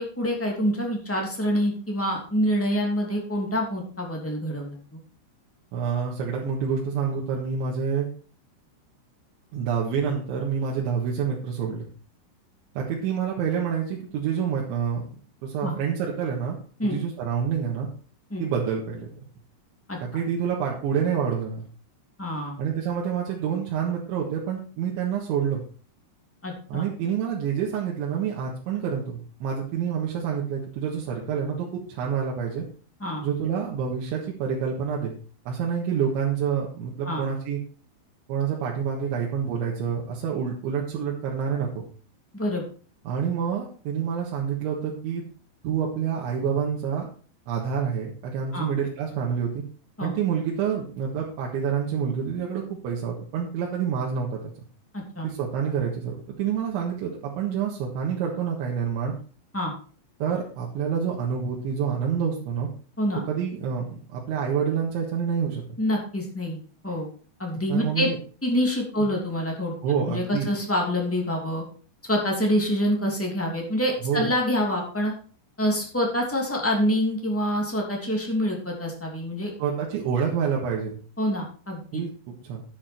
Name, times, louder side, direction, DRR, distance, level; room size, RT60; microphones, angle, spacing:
voice 1, 0.0-5.0 15.6-15.7 16.8-17.0 18.3-18.4 19.9-20.0 22.2-22.5 26.4-26.8 33.0-33.2 37.0-37.2 42.3-42.6 48.5-48.7 50.0-50.1 54.9-55.3 59.5-59.7 63.0-63.2 65.8-66.6 66.8-67.1 67.4-68.1 68.4-69.7 70.0-71.6 72.0-75.1 75.6-79.5 81.2-82.0, equal, 5° left, -1 dB, 1.4 m, -26 dB
voice 2, 5.7-8.1 9.5-11.9 12.8-15.0 15.4-16.6 16.8-17.9 18.4-19.1 20.0-21.6 22.6-25.6 26.7-32.6 33.2-35.1 35.5-37.6 38.3-41.9 43.1-45.3 45.6-47.1 47.5-49.6 50.0-54.4 55.2-59.2 60.2-62.7 63.3-65.6 67.7-68.2 69.0-69.1 69.8-70.5 74.0-74.3 79.6-81.0 81.9-82.6, right 7 dB, 80° right, -3 dB, 3.9 m, -27 dB
11.5 x 8.5 x 4.4 m, 0.41 s
omnidirectional pair, 5.3 m